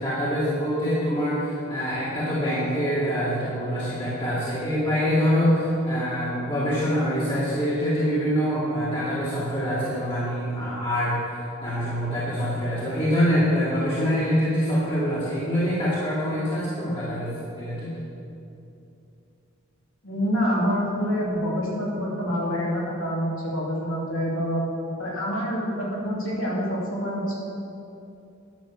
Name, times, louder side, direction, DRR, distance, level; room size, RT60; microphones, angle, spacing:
voice 1, 0.0-17.9, equal, 25° left, -10 dB, 2.2 m, -25 dB
voice 2, 20.0-24.6 25.0-27.3, equal, 70° left, -4 dB, 2.9 m, -26 dB
10.5 x 6.5 x 7.4 m, 2.8 s
head